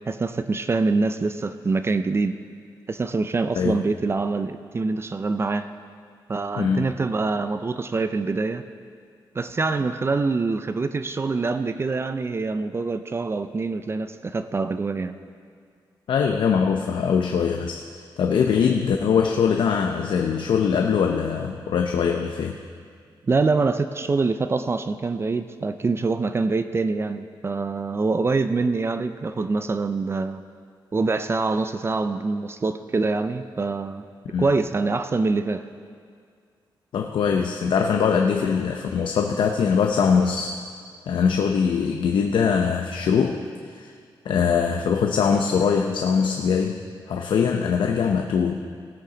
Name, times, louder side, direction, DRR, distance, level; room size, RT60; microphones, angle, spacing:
voice 1, 0.1-2.3 2.9-5.7 6.3-8.6 9.3-15.2 23.2-30.4 30.9-34.0 34.4-35.6, right 3 dB, 30° right, 11 dB, 0.4 m, -25 dB
voice 2, 6.6-6.9 16.1-17.8 18.2-22.6 34.2-34.5 36.9-40.5 41.1-43.4 43.7-43.9 44.2-46.8 47.1-48.6, left 6 dB, 80° left, 3 dB, 0.6 m, -22 dB
17.5 x 8.4 x 3.9 m, 2.1 s
cardioid pair, 105°, 8 cm